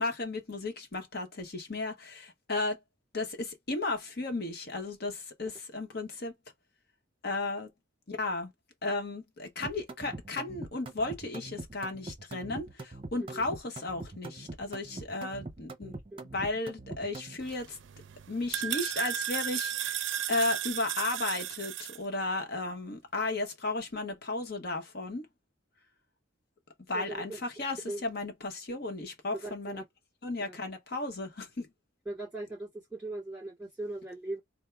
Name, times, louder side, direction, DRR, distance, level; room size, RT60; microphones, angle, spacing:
voice 1, 0.0-2.8 3.1-6.3 7.2-7.7 8.1-8.5 8.8-15.9 16.3-17.8 18.3-25.3 26.9-29.8 30.2-31.7, left 2 dB, 55° left, 1.0 m, -34 dB
sound 1, 9.6-17.4, right 2 dB, 30° right, 0.7 m, -43 dB
voice 2, 15.8-16.3 26.9-27.4 27.8-28.0 29.3-29.8 30.4-30.6 32.1-34.4, right 2 dB, 5° right, 2.2 m, -39 dB
sound 2, 17.4-22.0, right 11 dB, 75° right, 0.4 m, -34 dB
3.5 x 2.1 x 4.4 m
head